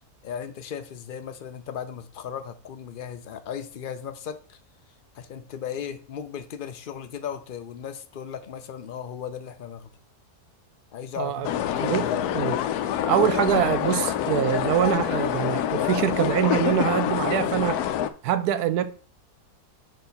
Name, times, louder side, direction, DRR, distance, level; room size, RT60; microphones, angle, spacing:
voice 1, 0.2-4.6 5.1-9.9 10.9-12.1, left 8 dB, 65° left, 0.5 m, -36 dB
voice 2, 11.2-11.5 11.8-12.0 12.3-12.6 13.1-17.8 18.2-18.8, right 10 dB, 90° right, 1.2 m, -24 dB
sound 1, 11.4-18.1, left 10 dB, 80° left, 1.1 m, -26 dB
5.1 x 4.6 x 5.2 m
omnidirectional pair, 1.6 m